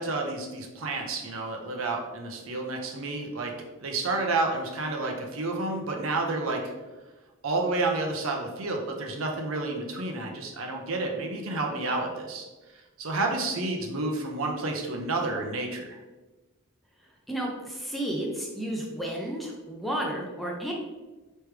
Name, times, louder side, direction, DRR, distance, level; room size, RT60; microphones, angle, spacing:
voice 1, 0.0-3.5 3.8-6.7 7.4-12.5 13.0-16.0, right 2 dB, 65° right, 2 dB, 0.7 m, -30 dB
voice 2, 17.3-20.7, right 1 dB, ahead, -2 dB, 0.5 m, -32 dB
4.7 x 3.2 x 3.2 m, 1.2 s
head